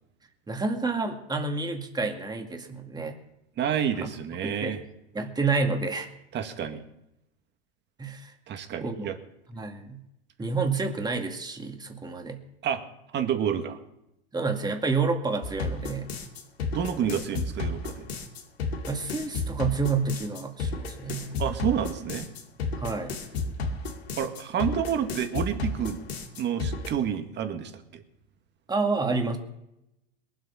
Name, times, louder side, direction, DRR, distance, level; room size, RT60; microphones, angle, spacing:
voice 1, 0.5-3.2 4.0-4.1 4.4-4.8 5.1-6.1 8.0-8.3 8.8-9.1 9.5-10.0 10.4-12.4 14.3-16.1 18.9-21.3 22.8-23.2 28.7-29.4, right 4 dB, 15° right, 4 dB, 2.1 m, -29 dB
voice 2, 3.6-4.8 6.3-6.8 8.5-9.2 12.6-12.8 13.1-13.8 16.7-18.1 21.4-22.3 24.2-26.0 26.4-28.0, right 8 dB, 35° right, 7 dB, 1.9 m, -29 dB
sound 1, 15.4-26.9, left 3 dB, 80° left, 2.4 m, -32 dB
22.0 x 8.1 x 5.7 m, 0.84 s
hypercardioid pair, 95°, 31 cm